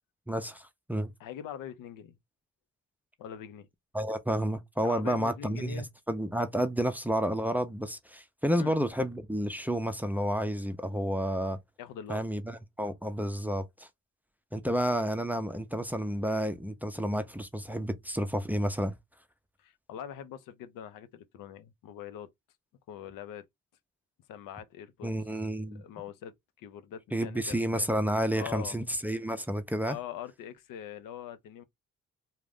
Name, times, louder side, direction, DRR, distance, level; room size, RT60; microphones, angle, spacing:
voice 1, 0.3-1.1 3.9-11.6 12.1-13.9 14.5-19.0 25.0-25.8 27.1-30.0, equal, 5° right, 0.4 m, -30 dB
voice 2, 1.2-2.2 3.2-3.7 4.8-5.9 8.5-8.8 11.8-12.2 19.6-22.3 22.9-23.4 24.3-25.1 25.8-26.3 26.6-27.9 28.4-28.8 29.8-31.6, left 9 dB, 85° left, 0.5 m, -42 dB
2.4 x 2.1 x 3.3 m
cardioid pair, 70°, 32 cm